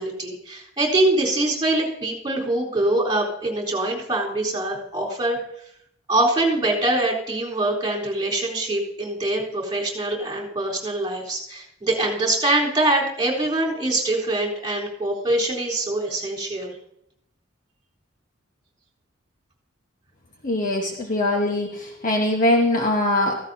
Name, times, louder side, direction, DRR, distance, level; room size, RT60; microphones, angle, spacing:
voice 1, 0.0-5.4 6.1-16.8, right 2 dB, 20° right, -3 dB, 3.8 m, -24 dB
voice 2, 20.4-23.4, left 1 dB, 40° left, 1 dB, 1.3 m, -22 dB
15.5 x 15.0 x 2.8 m, 0.75 s
head